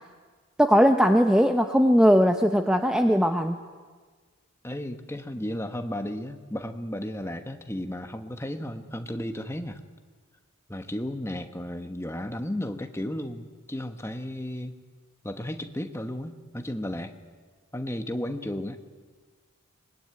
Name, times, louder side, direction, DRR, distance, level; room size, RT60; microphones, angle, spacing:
voice 1, 0.6-3.6, equal, 5° right, 6 dB, 0.7 m, -19 dB
voice 2, 4.6-9.8 10.7-14.7 15.2-17.1 17.7-18.8, left 1 dB, 10° left, 7 dB, 1.2 m, -34 dB
24.0 x 21.5 x 9.7 m, 1.5 s
head